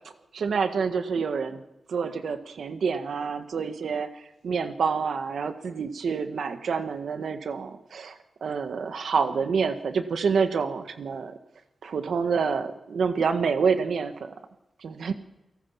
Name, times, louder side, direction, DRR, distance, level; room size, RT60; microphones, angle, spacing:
voice 1, 0.3-1.6 1.9-11.3 11.8-14.3 14.8-15.1, right 5 dB, 85° right, 8 dB, 1.6 m, -27 dB
29.5 x 18.5 x 5.8 m, 0.96 s
wide cardioid pair, 140°, 0 cm